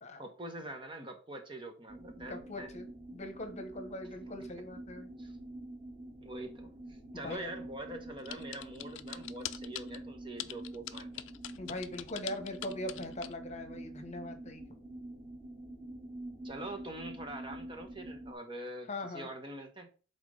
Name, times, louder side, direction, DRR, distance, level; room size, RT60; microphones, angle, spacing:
voice 1, 0.2-2.7 5.2-5.3 6.2-11.1 16.4-19.9, right 1 dB, 25° right, 1.0 m, -44 dB
sound 1, 1.9-18.3, right 1 dB, 10° right, 1.9 m, -47 dB
voice 2, 2.2-5.1 7.2-7.5 11.6-14.6 18.9-19.3, left 1 dB, 35° left, 1.0 m, -41 dB
sound 2, 8.2-10.0 10.4-13.3, left 13 dB, 75° left, 0.4 m, -42 dB
5.8 x 3.9 x 4.9 m
head